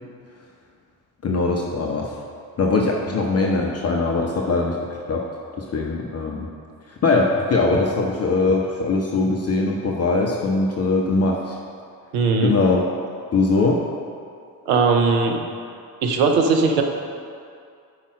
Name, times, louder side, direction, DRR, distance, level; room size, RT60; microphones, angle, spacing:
voice 1, 1.2-2.1 2.6-4.8 5.1-5.2 5.6-6.5 7.0-11.6 12.4-12.9 13.3-13.8, left 3 dB, 30° left, 0 dB, 0.7 m, -21 dB
voice 2, 12.1-12.6 14.7-15.4 16.0-16.8, right 4 dB, 70° right, 3 dB, 0.9 m, -19 dB
5.5 x 4.8 x 6.2 m, 2.3 s
figure-of-eight pair, 45°, 49 cm